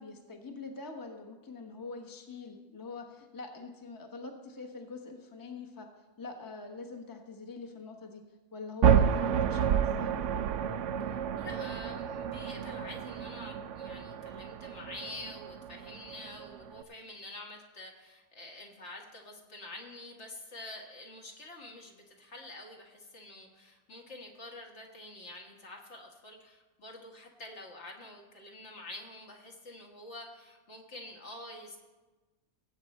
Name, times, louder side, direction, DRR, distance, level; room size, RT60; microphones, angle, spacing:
voice 1, 0.0-5.9 6.2-8.2 8.5-10.1, left 4 dB, 15° left, 3 dB, 1.0 m, -44 dB
sound 1, 8.8-16.8, right 8 dB, 65° right, 0.8 m, -30 dB
voice 2, 11.0-31.8, left 2 dB, 50° left, 0 dB, 1.8 m, -47 dB
19.0 x 8.1 x 4.2 m, 1.2 s
omnidirectional pair, 1.5 m